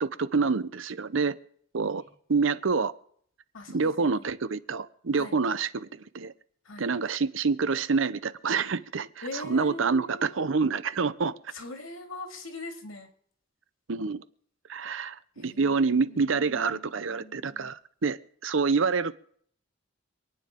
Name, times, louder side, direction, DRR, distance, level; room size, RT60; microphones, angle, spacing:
voice 1, 0.0-1.3 1.7-2.0 2.3-2.9 3.7-5.9 6.1-6.3 6.8-9.1 9.5-11.3 13.9-14.2 14.7-19.1, right 4 dB, 75° right, 0.7 m, -27 dB
voice 2, 3.5-4.3 5.1-5.4 6.6-6.9 9.2-10.8 11.5-13.1 15.3-17.7, left 2 dB, 90° left, 2.3 m, -42 dB
27.0 x 9.5 x 3.7 m
head